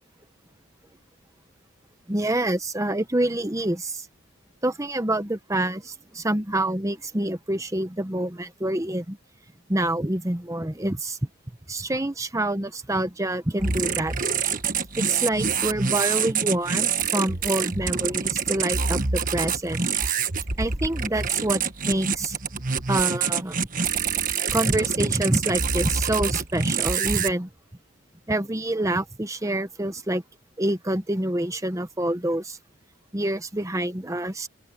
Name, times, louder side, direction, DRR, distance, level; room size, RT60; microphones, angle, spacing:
voice 1, 2.1-4.1 4.6-9.2 9.7-11.2 11.7-14.2 15.0-19.9 20.6-22.4 22.9-23.7 24.5-27.5 28.3-30.2 30.6-32.6 33.1-34.5, right 1 dB, 15° right, 1.0 m, -27 dB
sound 1, 13.6-27.3, right 6 dB, 45° right, 1.5 m, -26 dB
open air
head